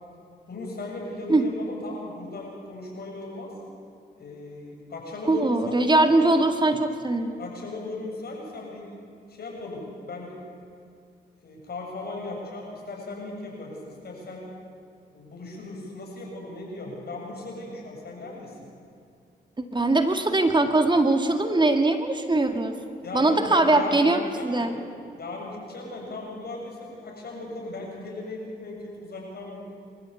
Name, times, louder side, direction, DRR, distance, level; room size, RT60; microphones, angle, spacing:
voice 1, 0.5-3.5 4.2-5.8 6.2-6.3 7.4-8.9 9.3-10.4 11.4-14.5 15.1-18.6 23.0-24.7 25.2-29.6, left 2 dB, 65° left, -1 dB, 7.4 m, -37 dB
voice 2, 5.3-7.4 19.7-22.8 23.1-24.7, right 2 dB, 25° right, 6 dB, 2.1 m, -21 dB
25.0 x 14.5 x 8.4 m, 2.4 s
cardioid pair, 55°, 18 cm